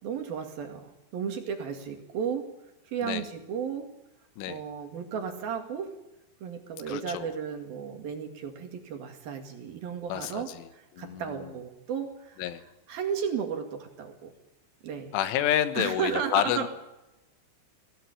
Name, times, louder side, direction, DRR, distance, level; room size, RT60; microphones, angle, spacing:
voice 1, 0.0-2.5 2.9-3.9 4.5-5.9 6.4-12.4 12.9-14.3 14.8-15.1 15.8-16.7, right 7 dB, 55° right, 5 dB, 3.7 m, -34 dB
voice 2, 6.9-7.3 10.1-10.7 11.0-11.5 12.4-12.6 15.1-16.7, left 11 dB, 90° left, 11 dB, 3.8 m, -29 dB
23.0 x 17.0 x 8.6 m, 0.96 s
omnidirectional pair, 5.5 m